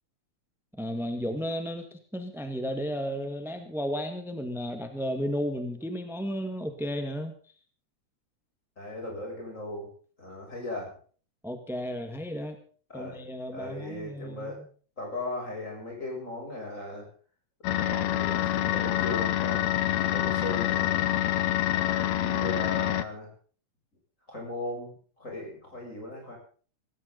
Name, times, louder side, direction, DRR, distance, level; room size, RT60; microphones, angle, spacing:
voice 1, 0.8-7.3 11.4-12.6 12.9-14.7, equal, ahead, 7 dB, 0.6 m, -33 dB
voice 2, 8.8-9.9 10.2-10.9 12.9-13.2 13.5-14.6 15.0-17.1 17.7-19.6 20.0-21.1 21.7-23.3 24.3-26.4, left 2 dB, 25° left, 0 dB, 7.7 m, -37 dB
sound 1, 17.6-23.0, left 13 dB, 75° left, 2.1 m, -26 dB
17.5 x 17.0 x 4.0 m, 0.43 s
omnidirectional pair, 3.3 m